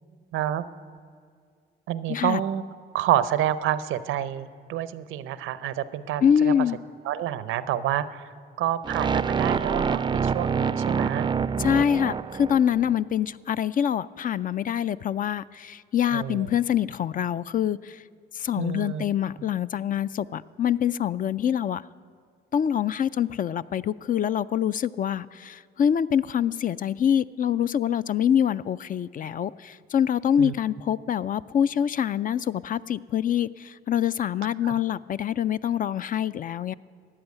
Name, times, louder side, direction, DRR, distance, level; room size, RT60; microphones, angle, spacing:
voice 1, 0.3-0.6 1.9-2.6 2.9-6.5 7.0-8.3 8.6-11.3 16.1-16.5 18.6-19.0 30.4-30.5 34.6-34.7, right 12 dB, 90° right, 15 dB, 0.7 m, -28 dB
voice 2, 2.1-2.4 6.2-6.8 11.6-18.0 18.3-21.8 22.5-36.7, left 9 dB, 45° left, 16 dB, 0.4 m, -25 dB
sound 1, 8.8-12.9, right 6 dB, 25° right, 0.4 m, -26 dB
13.5 x 8.9 x 9.5 m, 2.1 s
cardioid pair, 90°, 20 cm